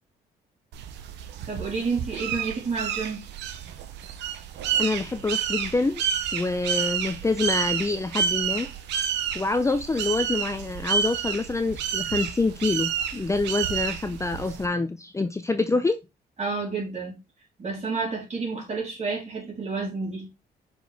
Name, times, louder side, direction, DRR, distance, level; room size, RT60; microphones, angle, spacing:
sound 1, 0.7-14.7, right 8 dB, 85° right, 0.9 m, -30 dB
voice 1, 1.5-3.3 16.4-17.2 17.6-20.3, right 4 dB, 40° right, 3.6 m, -30 dB
voice 2, 4.8-6.0 6.3-8.7 9.3-16.0, left 3 dB, 15° left, 0.6 m, -26 dB
6.3 x 4.8 x 3.4 m
cardioid pair, 85°, 18 cm